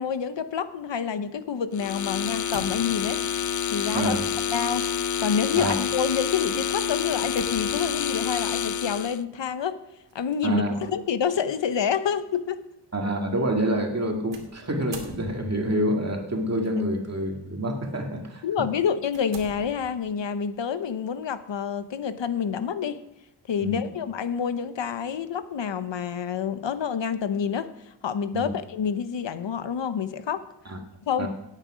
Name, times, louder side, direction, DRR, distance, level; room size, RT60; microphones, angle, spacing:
voice 1, 0.0-3.2 3.7-4.2 4.5-4.9 5.2-9.8 10.1-12.6 18.4-23.0 23.5-30.5 31.0-31.3, left 7 dB, 85° left, 12 dB, 0.9 m, -28 dB
sound 1, 1.7-9.2, left 8 dB, 45° left, 0.4 m, -28 dB
sound 2, 2.3-3.2 4.5-4.9 5.3-5.5 7.1-8.0 10.1-10.4 11.2-11.3 14.3-15.7 16.6-17.1 17.6-17.8 18.4-18.5 19.1-20.3, right 4 dB, 80° right, 2.5 m, -45 dB
voice 2, 3.9-4.3 5.6-5.7 10.4-10.7 12.9-18.7 23.6-23.8 28.3-28.5 30.7-30.8 31.2-31.3, right 1 dB, 35° right, 2 dB, 2.2 m, -27 dB
17.5 x 9.0 x 5.0 m, 0.89 s
wide cardioid pair, 120°, 43 cm